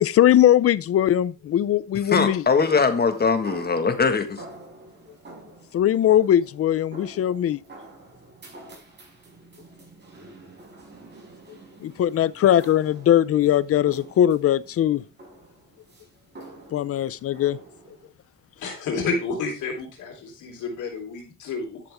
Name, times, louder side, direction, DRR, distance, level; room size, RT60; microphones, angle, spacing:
voice 1, 0.0-2.4 5.7-7.6 11.8-15.0 16.7-17.6, left 11 dB, 50° left, 0.5 m, -20 dB
voice 2, 1.9-4.4, left 5 dB, 30° left, 1.6 m, -21 dB
Gormley model sculpture, 2.6-18.1, right 2 dB, 35° right, 6.0 m, -47 dB
voice 3, 18.6-21.8, left 4 dB, 75° left, 3.6 m, -30 dB
11.5 x 6.8 x 3.5 m
cardioid pair, 90°, 30 cm